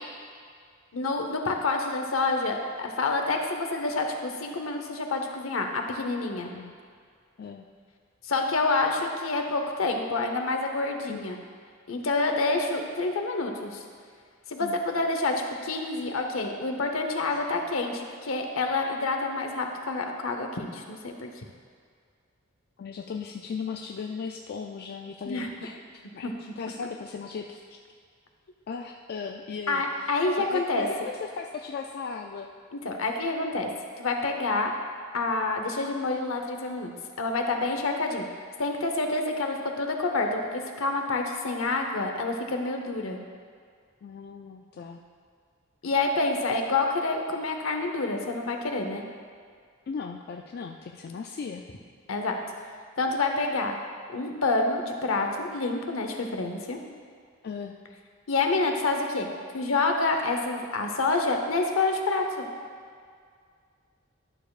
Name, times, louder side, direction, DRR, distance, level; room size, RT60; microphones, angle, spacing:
voice 1, 0.9-6.5 8.2-11.4 11.9-13.8 14.5-21.3 25.2-25.5 26.2-26.3 29.7-30.9 32.8-33.7 34.0-34.7 35.1-36.9 37.2-38.2 38.6-43.2 45.8-49.0 52.1-52.4 53.0-53.8 54.1-56.8 58.3-59.3 59.5-62.5, left 3 dB, 70° left, 4 dB, 0.8 m, -28 dB
voice 2, 22.8-25.8 26.1-26.3 26.6-27.6 28.7-32.5 44.0-45.0 49.9-51.7 57.4-57.8, left 5 dB, 50° left, 2 dB, 0.3 m, -37 dB
11.5 x 6.7 x 2.4 m, 2.1 s
head